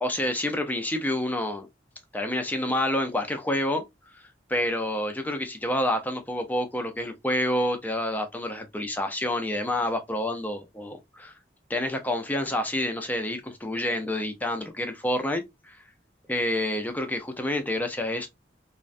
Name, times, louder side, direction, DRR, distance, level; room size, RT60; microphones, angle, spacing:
voice 1, 0.0-1.7 2.1-3.8 4.1-4.2 4.5-11.3 11.7-15.8 16.3-18.3, left 1 dB, 10° left, 0.3 m, -28 dB
2.4 x 2.1 x 2.4 m
head